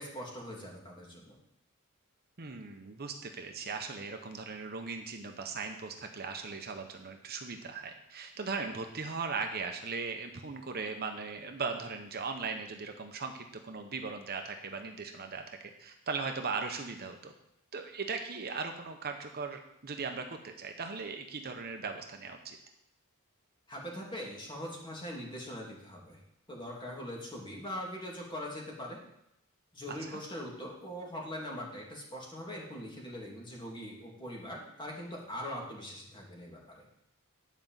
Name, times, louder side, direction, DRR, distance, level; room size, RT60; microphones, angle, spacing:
voice 1, 0.0-1.3 23.7-26.2 26.5-29.0 29.7-36.9, equal, 20° left, -2 dB, 2.5 m, -42 dB
voice 2, 2.4-17.3 17.7-22.6 29.9-30.2, right 4 dB, 45° right, 5 dB, 0.9 m, -38 dB
10.5 x 5.2 x 7.3 m, 0.80 s
head